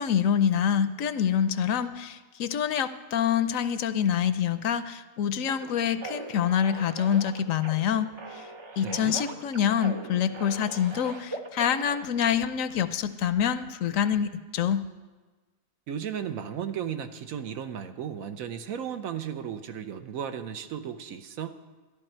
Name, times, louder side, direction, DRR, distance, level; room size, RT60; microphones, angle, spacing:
voice 1, 0.0-8.4 8.8-14.8, left 8 dB, 75° left, 12 dB, 1.0 m, -26 dB
sound 1, 5.5-12.0, right 3 dB, 40° right, 0.4 m, -41 dB
voice 2, 8.8-9.2 15.9-21.6, right 8 dB, 75° right, 8 dB, 1.2 m, -35 dB
13.5 x 11.5 x 4.4 m, 1.3 s
omnidirectional pair, 1.5 m